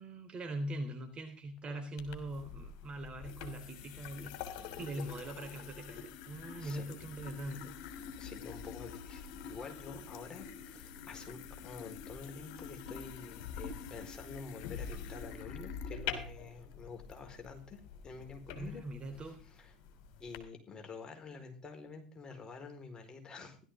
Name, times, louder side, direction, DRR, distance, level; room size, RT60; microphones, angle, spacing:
voice 1, 0.0-4.4 4.8-7.8 18.6-19.4, right 1 dB, 25° right, 7 dB, 3.4 m, -42 dB
sound 1, 2.0-20.4, left 7 dB, 50° left, 3.3 m, -46 dB
voice 2, 6.3-6.9 8.2-18.8 19.6-19.7 20.2-23.6, left 4 dB, 20° left, 4 dB, 4.5 m, -48 dB
16.5 x 12.5 x 3.7 m, 0.37 s
figure-of-eight pair, 80°, 4 cm